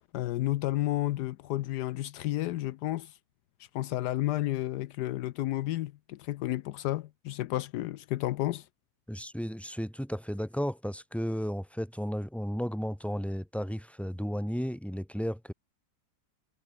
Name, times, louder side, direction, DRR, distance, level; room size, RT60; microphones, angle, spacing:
voice 1, 0.1-3.2 3.7-8.7, left 15 dB, 80° left, 1.2 m, -31 dB
voice 2, 9.1-15.5, equal, ahead, 3.9 m, -34 dB
omnidirectional pair, 1.8 m